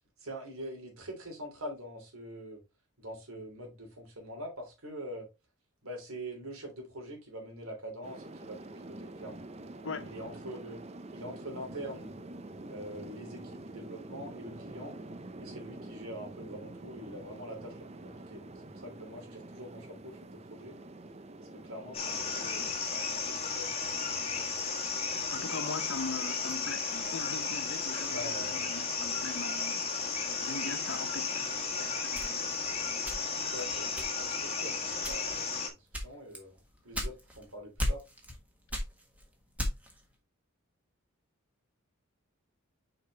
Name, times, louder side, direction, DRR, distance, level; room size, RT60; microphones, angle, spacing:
voice 1, 0.2-2.6 3.0-5.3 5.8-9.4 10.0-10.8 11.1-12.1 12.6-15.0 15.4-17.7 18.0-20.8 21.4-24.7 28.1-28.6 33.3-36.6 36.8-38.0, equal, 85° right, 3.4 m, -44 dB
sound 1, 8.0-22.7, right 2 dB, 30° right, 0.6 m, -46 dB
sound 2, 21.9-35.7, left 5 dB, 30° left, 1.4 m, -34 dB
voice 2, 25.3-29.8 30.4-31.5 31.8-32.6, left 4 dB, 60° left, 0.8 m, -41 dB
sound 3, 32.1-33.5 34.0-34.4 35.0-35.4 35.9-37.4 37.8-38.4 38.7-40.0, equal, 5° right, 1.5 m, -35 dB
6.6 x 4.9 x 3.3 m
head